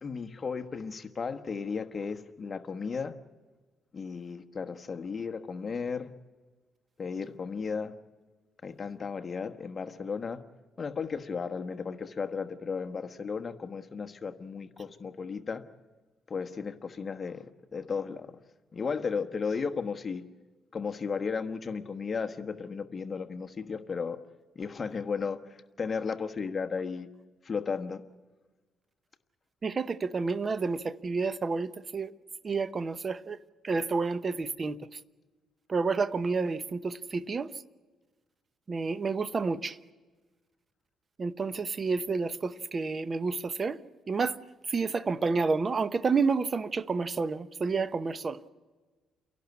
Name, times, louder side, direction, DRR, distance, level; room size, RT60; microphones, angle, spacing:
voice 1, 0.0-3.1 3.9-6.1 7.0-7.9 8.6-10.4 10.8-15.6 16.3-18.3 18.7-20.2 20.7-24.2 24.5-25.4 25.8-27.1 27.4-28.0, left 5 dB, 35° left, 1.3 m, -34 dB
voice 2, 29.6-32.1 32.4-33.4 33.6-35.0 35.7-37.5 38.7-39.8 41.2-43.8 44.1-44.4 44.7-48.4, right 4 dB, 35° right, 0.9 m, -30 dB
29.5 x 11.5 x 9.5 m
cardioid pair, 90°, 0 cm